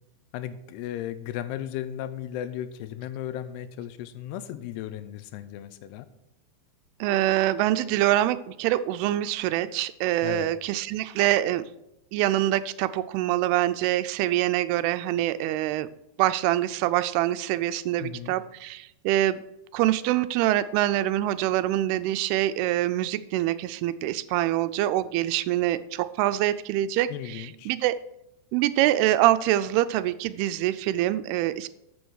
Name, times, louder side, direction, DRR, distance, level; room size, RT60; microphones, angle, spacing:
voice 1, 0.3-6.1 10.2-10.5 18.0-18.4 27.1-27.7, left 11 dB, 85° left, 13 dB, 2.8 m, -35 dB
voice 2, 7.0-11.6 12.1-15.9 16.2-19.4 19.7-28.0 28.5-31.7, right 14 dB, 85° right, 14 dB, 2.5 m, -25 dB
13.5 x 7.0 x 6.3 m, 0.86 s
omnidirectional pair, 4.6 m